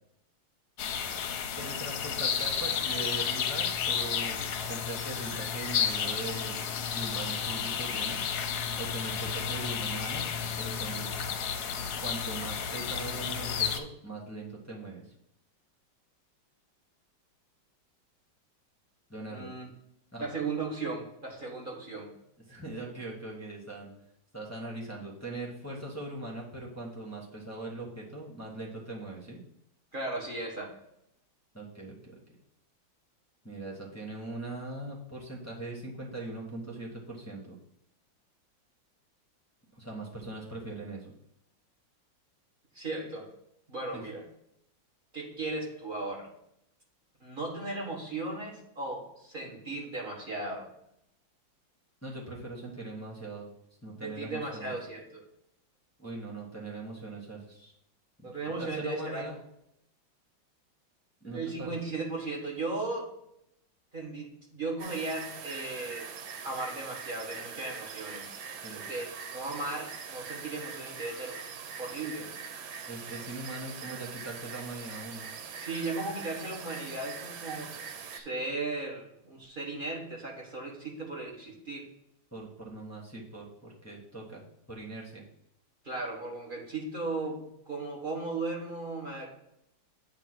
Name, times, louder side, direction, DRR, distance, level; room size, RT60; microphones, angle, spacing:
sound 1, 0.8-13.8, left 7 dB, 65° left, 1.1 m, -32 dB
voice 1, 1.5-6.6 6.9-8.2 8.8-10.3 10.6-11.1 12.0-15.1 19.1-19.5 20.1-20.2 22.5-23.9 24.3-29.4 31.5-32.1 33.4-37.6 39.7-41.1 43.9-44.0 52.0-53.5 53.8-54.7 56.0-57.7 58.2-58.3 58.6-59.4 61.2-61.8 68.6-68.9 72.9-75.3 82.3-84.4 84.7-85.2, right 2 dB, 10° left, -4 dB, 0.9 m, -41 dB
voice 2, 19.3-19.7 20.2-22.1 29.9-30.7 42.7-43.3 43.7-44.2 45.1-46.3 47.2-50.7 54.0-55.2 58.2-59.4 61.2-63.1 63.9-66.1 66.4-68.3 68.7-71.4 71.8-72.3 75.6-77.7 78.1-81.9 85.8-89.3, right 3 dB, 30° right, -3 dB, 1.5 m, -36 dB
sound 2, 64.8-78.2, right 6 dB, 90° right, 1.5 m, -42 dB
8.4 x 2.9 x 5.9 m, 0.77 s
omnidirectional pair, 2.1 m